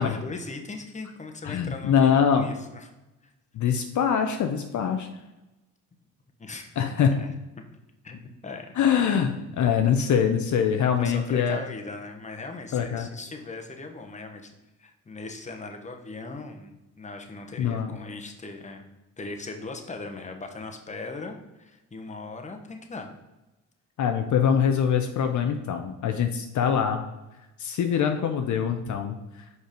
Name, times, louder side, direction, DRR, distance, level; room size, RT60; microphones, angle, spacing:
voice 1, 0.0-2.9 6.4-6.7 7.0-7.3 8.0-8.8 11.0-14.5 14.8-18.8 19.2-23.1, left 3 dB, 20° left, 4 dB, 1.0 m, -39 dB
voice 2, 1.4-2.5 3.5-5.1 6.8-7.3 8.8-11.6 12.7-13.1 17.6-17.9 24.0-27.0 27.6-29.5, left 7 dB, 60° left, 6 dB, 0.7 m, -24 dB
5.3 x 4.7 x 5.1 m, 1.0 s
cardioid pair, 85°, 34 cm